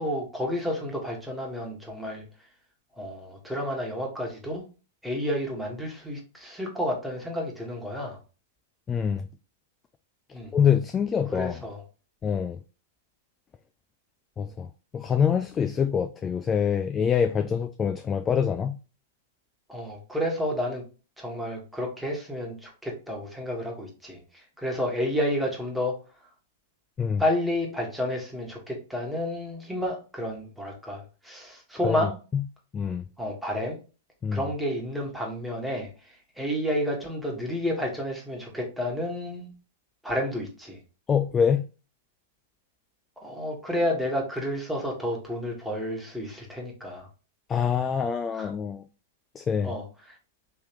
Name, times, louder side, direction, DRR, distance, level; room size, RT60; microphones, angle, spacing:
voice 1, 0.0-2.2 2.9-4.6 5.0-8.2 10.3-10.5 11.3-11.8 19.7-20.8 21.2-26.0 27.2-32.1 33.2-33.8 34.3-39.5 40.0-40.8 43.2-47.1 48.3-48.5 49.6-50.2, equal, ahead, 1.4 m, -31 dB
voice 2, 8.9-9.3 10.5-11.6 12.2-12.6 14.4-14.7 14.9-18.8 27.0-27.2 31.8-32.1 32.7-33.0 34.2-34.4 41.1-41.6 47.5-48.9 49.4-49.7, left 7 dB, 20° left, 0.3 m, -25 dB
3.5 x 3.0 x 2.9 m
hypercardioid pair, 105°, 0 cm